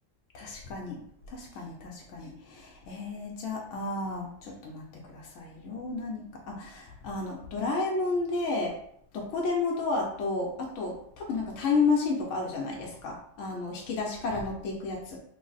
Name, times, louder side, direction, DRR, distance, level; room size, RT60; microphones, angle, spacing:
voice 1, 0.3-1.0 1.3-8.8 9.1-15.2, left 3 dB, 75° left, -1 dB, 1.0 m, -32 dB
3.2 x 2.0 x 3.9 m, 0.67 s
omnidirectional pair, 1.3 m